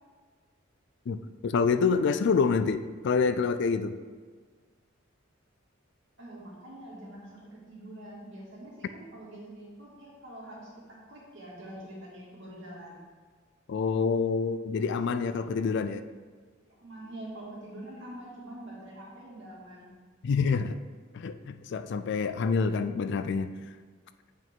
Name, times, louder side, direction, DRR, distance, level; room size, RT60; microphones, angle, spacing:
voice 1, 1.1-3.9 13.7-16.0 20.2-20.8 21.1-23.5, left 5 dB, 60° left, 11 dB, 0.4 m, -27 dB
voice 2, 6.2-13.0 15.4-15.9 16.8-19.9, right 1 dB, 65° right, -5 dB, 2.1 m, -45 dB
8.0 x 5.1 x 3.7 m, 1.5 s
head